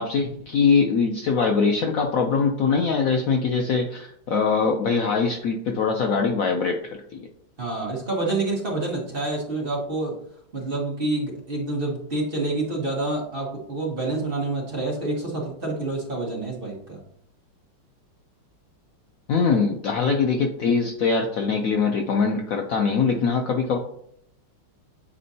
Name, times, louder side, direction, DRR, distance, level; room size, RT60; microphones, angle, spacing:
voice 1, 0.0-7.0 19.3-23.8, left 5 dB, 90° left, 3 dB, 0.7 m, -22 dB
voice 2, 7.6-10.1 10.5-17.0, right 2 dB, 30° right, -3 dB, 1.4 m, -27 dB
8.3 x 4.3 x 2.7 m, 0.68 s
omnidirectional pair, 2.2 m